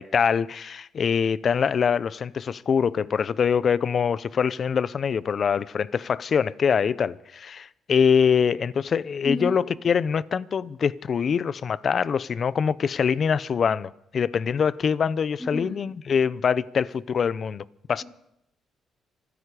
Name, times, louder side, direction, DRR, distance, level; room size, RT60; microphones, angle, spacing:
voice 1, 0.0-18.0, left 6 dB, 50° left, 0.6 m, -24 dB
voice 2, 15.4-15.8, left 1 dB, 10° left, 3.5 m, -30 dB
26.5 x 10.0 x 4.9 m
cardioid pair, 90°, 0 cm